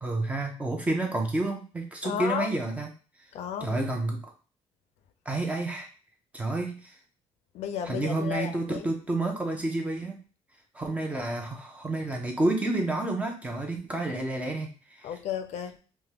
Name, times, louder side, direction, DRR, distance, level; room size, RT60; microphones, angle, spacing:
voice 1, 0.0-2.9 3.6-4.3 5.3-5.9 6.3-7.0 7.9-10.2 10.7-15.1, right 2 dB, 10° right, 0.5 m, -30 dB
voice 2, 2.0-2.6 3.3-3.8 7.5-8.9 15.0-15.8, left 8 dB, 70° left, 0.4 m, -33 dB
3.4 x 2.1 x 2.8 m
cardioid pair, 175°, 12 cm